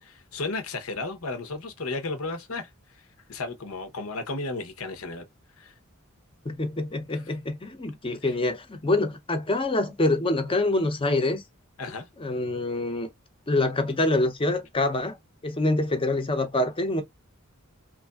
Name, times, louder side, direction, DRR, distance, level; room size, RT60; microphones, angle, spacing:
voice 1, 0.0-2.7 3.3-5.2 5.6-5.7 7.1-7.2 8.2-8.3 11.8-12.0, left 3 dB, 85° left, 0.9 m, -33 dB
voice 2, 6.5-11.4 12.2-13.1 13.5-15.2 15.4-17.0, left 2 dB, 25° left, 0.6 m, -25 dB
3.0 x 2.5 x 2.3 m
head